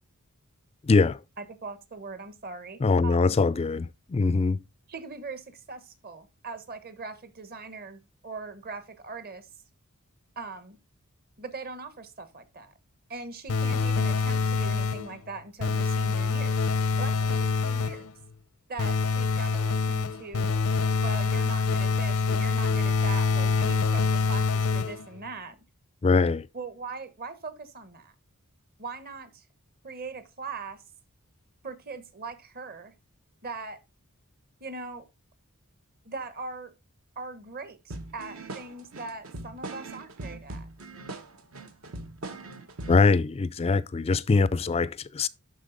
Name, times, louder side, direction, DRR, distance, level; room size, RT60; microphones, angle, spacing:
voice 1, 0.8-1.2 2.8-4.6 26.0-26.5 42.9-45.3, left 4 dB, 25° left, 0.3 m, -23 dB
voice 2, 1.4-3.4 4.2-4.3 4.9-9.5 10.4-10.8 11.4-12.7 13.1-16.6 17.0-18.1 18.7-20.5 21.0-25.6 26.5-28.1 28.8-29.4 29.8-30.8 31.6-32.9 33.4-33.8 34.6-35.1 36.0-36.7 37.2-40.7, right 4 dB, 45° right, 1.1 m, -40 dB
sound 1, 13.5-15.2 15.6-18.1 18.8-25.2, left 4 dB, 85° left, 0.7 m, -25 dB
sound 2, 37.9-43.1, right 2 dB, 70° right, 1.0 m, -40 dB
11.5 x 4.1 x 3.9 m
head